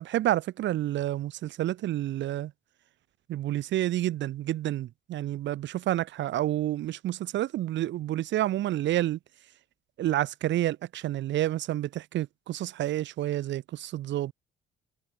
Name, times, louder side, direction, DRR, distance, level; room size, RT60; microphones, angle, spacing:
voice 1, 0.0-2.5 3.3-9.2 10.0-14.3, right 13 dB, 65° right, 0.6 m, -29 dB
cardioid pair, 90°, 20 cm